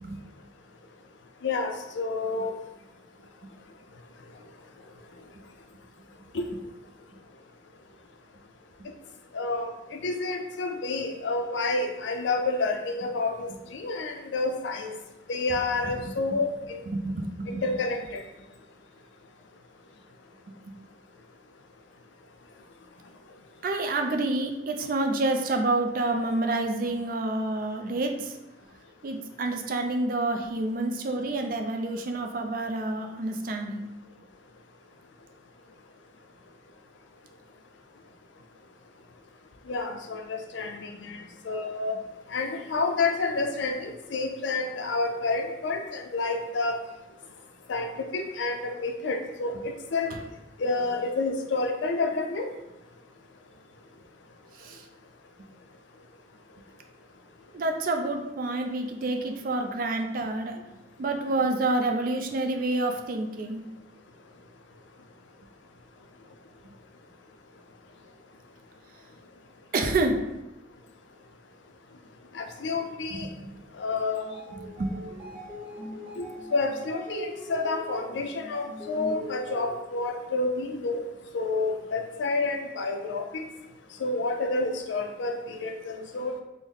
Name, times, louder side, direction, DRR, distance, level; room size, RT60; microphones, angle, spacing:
voice 1, 1.4-2.5 6.3-6.5 9.3-14.9 15.3-16.8 17.5-18.2 39.7-42.0 42.3-46.8 47.7-50.1 50.6-52.5 72.3-73.3 73.8-74.4 76.2-76.3 76.5-81.0 81.3-83.4 84.0-86.4, left 3 dB, 75° left, 4 dB, 0.4 m, -29 dB
voice 2, 16.9-17.6 23.6-28.3 29.0-33.8 54.6-54.8 57.5-60.5 61.0-63.6 69.7-70.2 73.1-73.5 74.8-74.9, right 2 dB, 45° right, 4 dB, 0.3 m, -28 dB
sound 1, 74.2-80.0, equal, ahead, 1.1 m, -41 dB
3.4 x 2.0 x 3.7 m, 0.95 s
head